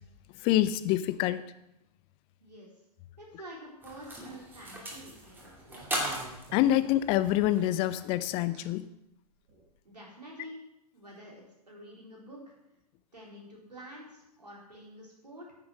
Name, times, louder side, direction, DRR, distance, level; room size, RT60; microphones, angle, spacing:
voice 1, 0.4-1.4 6.5-8.9, left 13 dB, 25° left, 14 dB, 0.6 m, -26 dB
voice 2, 2.4-2.7 3.2-5.5 9.8-10.6 10.9-12.5 13.1-15.5, equal, 80° right, -3 dB, 4.0 m, -48 dB
sound 1, 3.8-8.5, right 1 dB, 10° right, 2.5 m, -39 dB
sound 2, 4.0-4.3 5.6-7.4 8.5-8.7 9.5-9.7, right 3 dB, 40° right, 3.4 m, -49 dB
9.6 x 7.2 x 6.1 m, 0.86 s
figure-of-eight pair, 110°, 21 cm